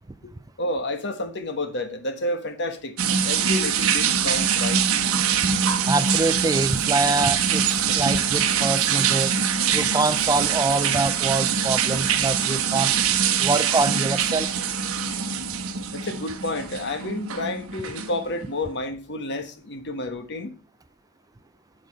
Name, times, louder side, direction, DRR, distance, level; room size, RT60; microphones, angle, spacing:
voice 1, 0.6-2.9 3.2-4.8 15.9-20.5, left 1 dB, 55° left, 1.4 m, -30 dB
sound 1, 3.0-18.5, right 7 dB, 80° right, 1.1 m, -23 dB
voice 2, 5.9-9.3 9.7-12.9 13.4-14.5, right 3 dB, 15° right, 0.4 m, -25 dB
8.0 x 8.0 x 5.3 m
head